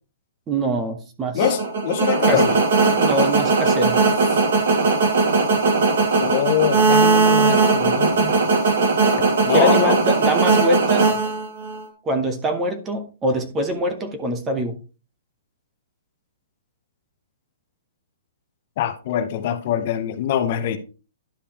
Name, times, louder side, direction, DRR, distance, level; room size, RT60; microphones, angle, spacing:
voice 1, 0.5-1.5 2.3-2.5 3.0-4.0 9.5-11.1 12.0-14.8, right 1 dB, 10° right, 0.7 m, -24 dB
voice 2, 1.3-2.6 6.2-8.3 9.4-10.0 18.8-20.8, left 10 dB, 30° left, 0.8 m, -23 dB
sound 1, 1.4-11.8, right 4 dB, 50° right, 1.9 m, -18 dB
11.5 x 5.2 x 2.9 m
hypercardioid pair, 180°, 0 cm